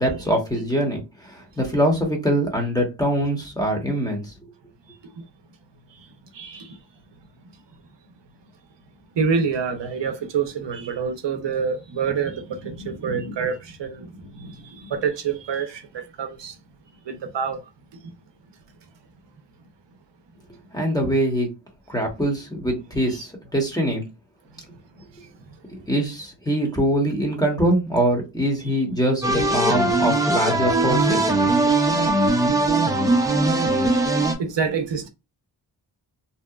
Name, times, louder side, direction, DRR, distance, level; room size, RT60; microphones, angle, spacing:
voice 1, 0.0-4.3 20.7-21.5 21.9-24.0 25.7-31.3, equal, 10° left, 0.9 m, -23 dB
voice 2, 6.3-6.8 9.2-16.6 17.1-17.6 30.2-30.3 32.4-32.5 32.9-33.1 33.5-33.7 34.4-35.1, right 6 dB, 80° right, 0.6 m, -27 dB
sound 1, 29.2-34.3, right 2 dB, 10° right, 0.5 m, -20 dB
2.8 x 2.1 x 2.2 m
wide cardioid pair, 75°, 43 cm